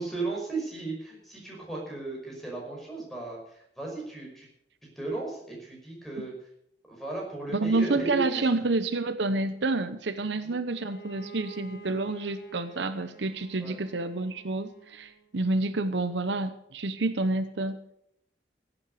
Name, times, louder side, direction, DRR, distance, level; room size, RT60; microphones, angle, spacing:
voice 1, 0.0-4.5 5.0-6.3 6.9-8.5 10.4-10.6 13.6-13.8, right 3 dB, ahead, -2 dB, 5.4 m, -35 dB
voice 2, 7.5-17.8, right 2 dB, 75° right, 11 dB, 0.9 m, -29 dB
Bowed string instrument, 10.6-15.3, right 4 dB, 60° left, 2.7 m, -49 dB
16.0 x 8.7 x 6.6 m, 0.72 s
head